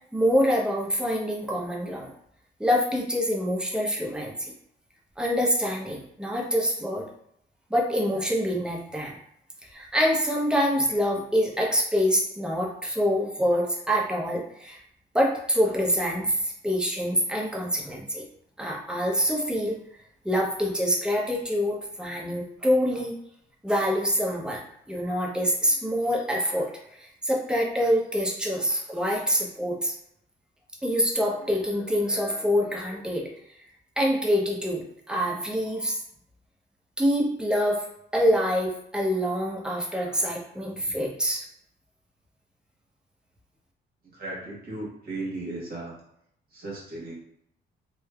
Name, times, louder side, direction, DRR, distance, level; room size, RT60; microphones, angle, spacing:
voice 1, 0.1-2.1 2.6-4.5 5.2-7.0 7.7-9.2 9.6-14.8 15.1-18.2 18.6-19.8 20.2-23.1 23.6-29.9 30.8-33.3 34.0-36.0 37.0-37.9 38.1-41.4, equal, 5° right, -2 dB, 0.6 m, -26 dB
voice 2, 44.0-46.0 46.5-47.1, right 2 dB, 50° right, -5 dB, 1.2 m, -36 dB
3.1 x 2.1 x 2.3 m, 0.73 s
cardioid pair, 90°, 20 cm